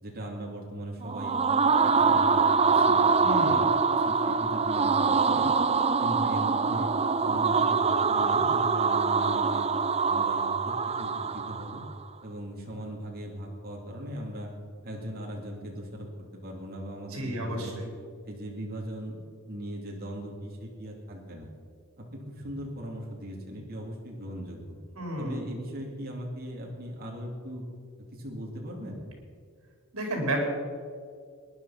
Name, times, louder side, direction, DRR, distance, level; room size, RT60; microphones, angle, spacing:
voice 1, 0.0-1.4 1.8-3.6 4.0-5.5 6.0-6.9 7.2-9.7 10.1-11.8 12.2-14.5 14.8-16.1 16.4-17.8 18.3-21.5 22.0-24.8 25.2-27.6 28.1-29.1, equal, 45° right, -1 dB, 2.8 m, -39 dB
sound 1, 1.0-11.9, right 5 dB, 30° right, 0.6 m, -24 dB
voice 2, 3.2-3.7 17.1-17.9 25.0-25.4 29.9-30.4, right 1 dB, 70° right, 0 dB, 4.5 m, -31 dB
19.0 x 11.0 x 5.8 m, 2.1 s
head